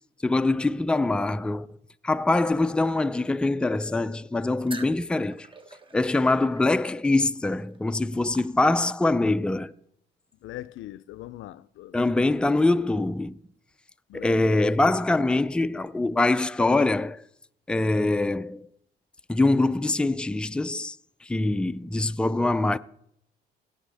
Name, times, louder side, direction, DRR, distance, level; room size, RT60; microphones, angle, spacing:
voice 1, 0.2-1.7 2.0-5.5 5.9-9.7 11.9-13.4 14.1-17.2 17.7-18.7 19.3-21.0 21.2-22.8, left 2 dB, 5° left, 0.4 m, -24 dB
sound 1, 4.7-9.1, right 2 dB, 25° right, 1.2 m, -46 dB
voice 2, 10.4-12.0 14.1-14.9, left 14 dB, 80° left, 0.5 m, -41 dB
17.5 x 9.1 x 3.4 m
cardioid pair, 90°, 20 cm